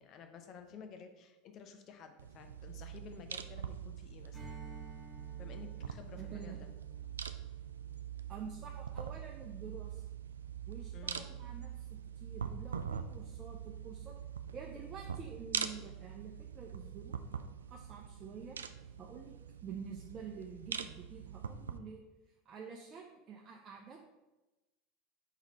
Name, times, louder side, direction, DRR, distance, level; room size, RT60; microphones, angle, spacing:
voice 1, 0.0-4.5 5.4-6.7 10.9-11.3, left 6 dB, 45° left, 6 dB, 0.8 m, -52 dB
sound 1, 2.2-21.8, right 8 dB, 80° right, 0.3 m, -43 dB
Strum, 4.3-9.1, right 1 dB, ahead, 1.7 m, -56 dB
voice 2, 6.1-6.6 8.3-10.1 10.7-11.9 12.1-14.2 14.5-17.2 17.7-18.6 19.0-19.3 19.6-22.0 22.4-24.0, right 6 dB, 35° right, 0 dB, 0.7 m, -48 dB
4.5 x 4.1 x 5.2 m, 1.1 s
figure-of-eight pair, 80°, 0 cm